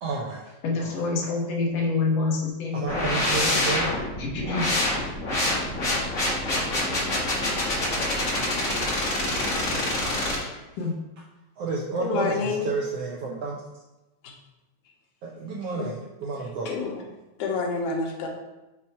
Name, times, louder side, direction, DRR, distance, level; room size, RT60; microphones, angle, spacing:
voice 1, 0.0-0.5 0.8-1.0 2.7-3.9 11.6-13.6 15.2-16.7, right 3 dB, 75° right, -2 dB, 1.4 m, -31 dB
voice 2, 0.6-3.1 4.2-4.7 10.8-11.0, left 3 dB, 65° left, -1 dB, 1.8 m, -27 dB
sound 1, 2.9-10.4, left 1 dB, 45° left, 1.0 m, -26 dB
voice 3, 12.0-12.6 14.2-14.3 15.7-15.9 16.7-17.0 17.4-18.3, left 4 dB, 85° left, 1 dB, 2.4 m, -28 dB
5.9 x 4.3 x 4.5 m, 1.0 s
omnidirectional pair, 3.5 m